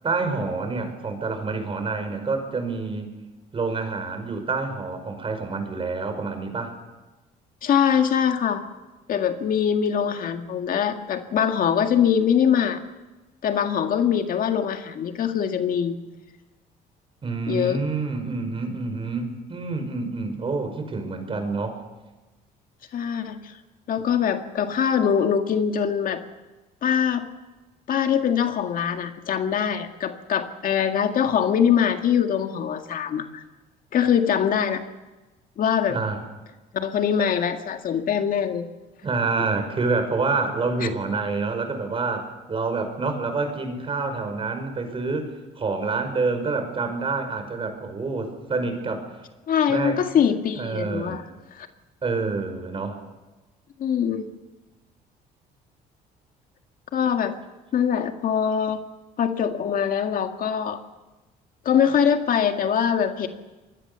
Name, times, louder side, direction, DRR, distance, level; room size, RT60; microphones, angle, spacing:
voice 1, 0.0-3.1 3.5-6.8 17.2-21.8 35.9-36.2 39.0-49.1 49.7-50.0 50.6-51.2 52.0-53.0, right 3 dB, 30° right, 7 dB, 5.4 m, -27 dB
voice 2, 7.6-8.6 9.1-12.8 13.4-16.0 17.5-17.8 22.9-23.6 23.9-26.2 26.8-27.3 27.9-33.4 33.9-34.8 35.6-36.0 36.7-38.7 40.8-40.9 49.5-51.2 51.5-51.7 53.8-54.3 56.9-57.4 57.7-58.8 59.2-60.8 61.7-63.3, left 8 dB, 55° left, 6 dB, 1.9 m, -23 dB
25.5 x 20.5 x 7.0 m, 1.1 s
cardioid pair, 110°, 17 cm